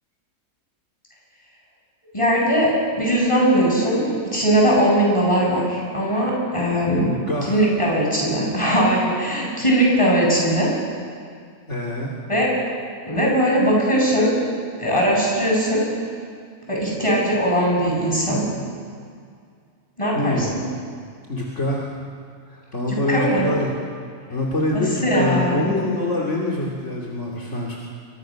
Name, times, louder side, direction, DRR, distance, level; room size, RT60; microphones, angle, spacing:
voice 1, 2.1-7.1 7.5-10.7 12.3-12.5 13.0-14.3 14.8-15.8 16.7-18.4 20.0-20.6 23.1-23.5 24.7-25.7, equal, 20° left, -3 dB, 7.9 m, -20 dB
voice 2, 7.0-7.6 11.7-12.1 20.1-20.5 21.3-21.9 22.5-23.7 24.3-27.8, left 1 dB, 55° left, -3 dB, 3.3 m, -25 dB
29.0 x 24.0 x 6.5 m, 2.2 s
omnidirectional pair, 1.5 m